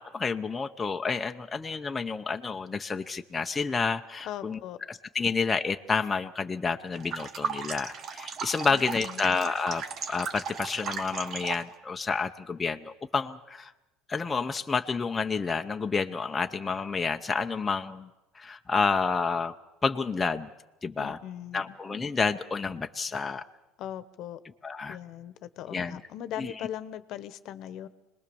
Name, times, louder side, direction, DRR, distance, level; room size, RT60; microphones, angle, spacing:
voice 1, 0.0-4.6 4.9-13.7 14.1-18.1 18.3-19.5 19.8-20.5 20.8-21.2 21.5-23.4 24.6-25.0 25.7-26.0 26.4-26.5, left 4 dB, 20° left, 5 dB, 0.8 m, -29 dB
voice 2, 4.2-4.8 8.7-9.3 21.0-21.8 23.8-24.4 24.9-27.9, left 11 dB, 55° left, 13 dB, 1.1 m, -39 dB
sound 1, 7.0-11.7, right 6 dB, 45° right, 1.5 m, -36 dB
26.0 x 20.0 x 7.0 m, 1.0 s
supercardioid pair, 115°, 0 cm